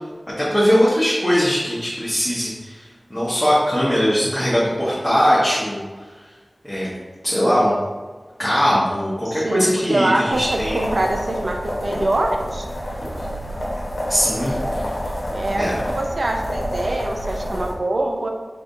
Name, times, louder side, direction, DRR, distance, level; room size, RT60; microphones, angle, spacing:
voice 1, 0.4-5.8 6.0-6.1 6.6-6.9 7.2-7.7 8.4-10.8 14.1-14.9 15.6-15.8, equal, 10° left, -9 dB, 1.3 m, -20 dB
voice 2, 9.2-12.6 15.3-18.3, right 2 dB, 70° right, 2 dB, 0.6 m, -24 dB
sound 1, 10.3-17.7, equal, 70° left, 1.1 m, -28 dB
4.0 x 3.7 x 3.5 m, 1.4 s
wide cardioid pair, 45°, 0 cm